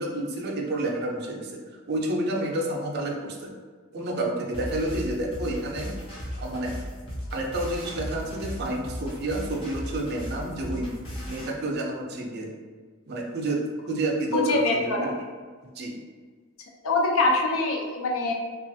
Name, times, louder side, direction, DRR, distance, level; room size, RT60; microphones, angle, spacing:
voice 1, 0.0-1.6 1.9-3.5 3.9-5.9 6.3-6.7 7.3-11.0 11.2-12.5 13.1-15.1 15.6-16.0, right 1 dB, 50° right, 0 dB, 0.4 m, -29 dB
sound 1, 4.5-11.5, equal, 25° left, 0.5 m, -36 dB
voice 2, 14.3-15.1 16.8-18.3, left 2 dB, 75° left, 1 dB, 0.5 m, -24 dB
3.0 x 2.3 x 2.6 m, 1.5 s
head